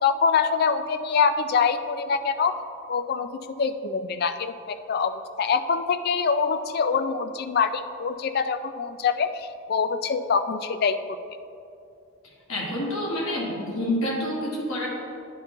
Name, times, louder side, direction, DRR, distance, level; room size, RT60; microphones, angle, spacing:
voice 1, 0.0-2.5 2.9-3.3 3.6-11.2, left 5 dB, 45° left, 10 dB, 0.3 m, -25 dB
voice 2, 12.5-14.9, left 1 dB, 80° left, -3 dB, 1.7 m, -28 dB
10.0 x 4.4 x 3.8 m, 2.6 s
head